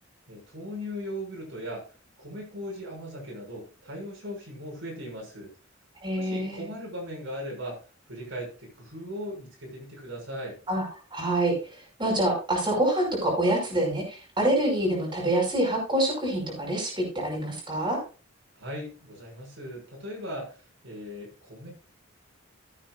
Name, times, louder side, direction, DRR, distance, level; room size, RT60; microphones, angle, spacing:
voice 1, 0.3-1.9 2.2-5.5 6.1-7.8 8.1-10.6 18.5-20.6 20.8-21.7, equal, 65° right, -1 dB, 6.2 m, -38 dB
voice 2, 6.0-6.6 10.7-18.0, right 1 dB, 20° right, -2 dB, 5.5 m, -26 dB
15.5 x 8.9 x 2.5 m, 0.34 s
head